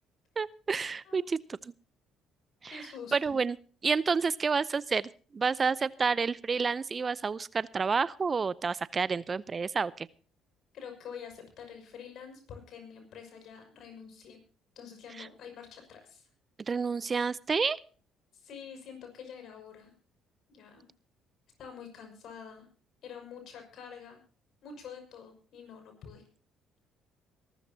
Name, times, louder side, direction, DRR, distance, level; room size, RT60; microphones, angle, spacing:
voice 1, 0.4-1.7 2.6-2.8 3.1-3.6 3.8-10.1 15.2-15.3 16.7-17.8, right 5 dB, 35° right, 20 dB, 0.6 m, -29 dB
voice 2, 1.0-1.4 2.7-3.4 10.7-14.4 14.8-16.3 18.3-19.9 20.5-20.9 21.6-22.7 23.0-24.2 24.6-26.2, left 7 dB, 60° left, 5 dB, 6.2 m, -47 dB
23.0 x 13.5 x 2.8 m, 0.39 s
hypercardioid pair, 55°, 0 cm